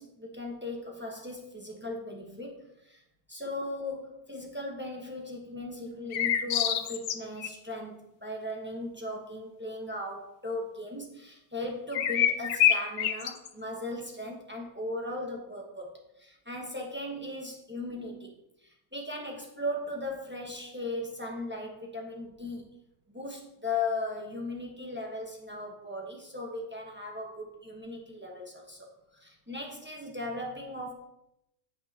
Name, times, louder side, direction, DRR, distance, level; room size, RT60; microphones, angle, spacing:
voice 1, 0.0-3.0 3.3-18.3 18.9-22.7 23.1-28.9 29.2-30.9, left 2 dB, 10° right, -1 dB, 1.2 m, -37 dB
sound 1, 6.1-7.5 11.9-13.5, left 10 dB, 70° left, 1.0 m, -25 dB
9.4 x 8.1 x 2.9 m, 0.86 s
omnidirectional pair, 1.5 m